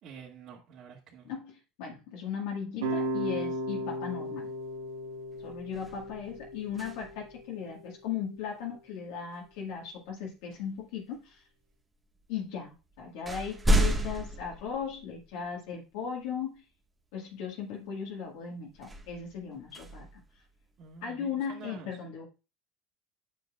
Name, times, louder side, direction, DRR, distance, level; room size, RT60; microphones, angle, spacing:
voice 1, 0.0-1.3 20.8-22.0, right 6 dB, 55° right, -5 dB, 2.1 m, -48 dB
voice 2, 1.2-4.5 5.4-11.4 12.3-16.6 17.1-20.2 21.0-22.3, left 7 dB, 75° left, -2 dB, 1.9 m, -37 dB
sound 1, 2.8-7.9, right 1 dB, 90° right, 1.4 m, -36 dB
sound 2, 4.7-4.9 5.3-7.4 9.5-9.7 10.5-11.3 12.2-12.3 12.7-15.5 16.0-16.1 18.7-20.9, right 1 dB, 15° right, 1.6 m, -32 dB
9.2 x 6.4 x 2.5 m, 0.30 s
hypercardioid pair, 85°, 0 cm